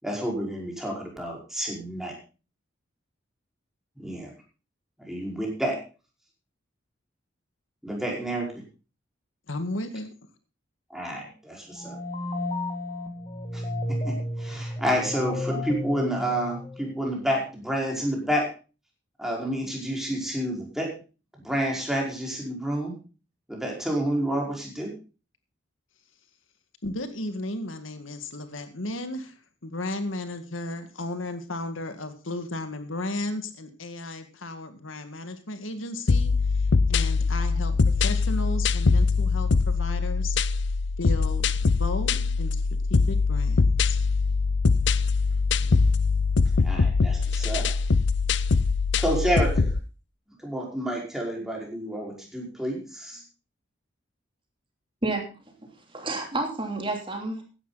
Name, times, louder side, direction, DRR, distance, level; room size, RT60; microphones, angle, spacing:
voice 1, 0.0-2.1 4.0-4.3 5.1-5.8 7.8-8.5 10.9-12.0 13.5-13.6 13.9-18.5 19.2-20.9 21.4-22.9 23.5-24.9 45.6-45.7 46.6-47.8 49.0-49.7 50.4-53.2, right 1 dB, ahead, -1 dB, 5.0 m, -29 dB
voice 2, 9.5-10.1 26.8-29.4 29.6-40.4 41.0-41.5 41.8-42.6 42.9-44.0, left 1 dB, 90° left, 8 dB, 2.0 m, -34 dB
sound 1, 11.7-17.2, left 1 dB, 30° left, 2.1 m, -33 dB
sound 2, 36.1-49.8, left 4 dB, 60° left, 0.6 m, -23 dB
voice 3, 55.6-57.4, right 2 dB, 25° right, 2 dB, 3.2 m, -30 dB
16.0 x 11.0 x 4.1 m, 0.34 s
head